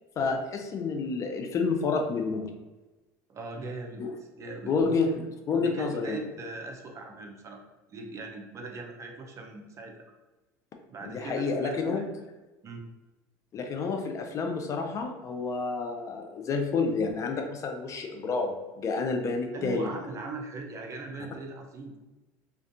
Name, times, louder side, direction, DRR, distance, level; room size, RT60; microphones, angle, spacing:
voice 1, 0.2-2.5 4.0-4.1 4.7-6.2 11.0-12.1 13.5-19.9, left 4 dB, 40° left, 4 dB, 0.4 m, -29 dB
voice 2, 3.3-4.0 4.4-5.0 5.6-7.6 7.9-10.1 10.9-12.0 12.6-12.8 19.5-22.0, right 3 dB, 35° right, 2 dB, 0.5 m, -40 dB
2.5 x 2.2 x 2.5 m, 1.1 s
supercardioid pair, 100°, 8 cm